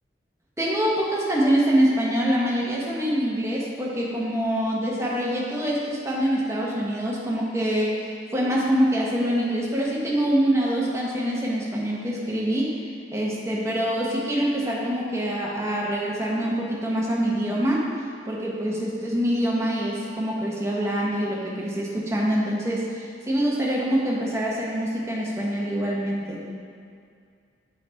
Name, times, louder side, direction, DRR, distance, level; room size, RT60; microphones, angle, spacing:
voice 1, 0.6-12.7 13.1-17.8 18.3-26.5, equal, 15° right, -4 dB, 0.8 m, -25 dB
7.7 x 3.4 x 4.4 m, 2.3 s
head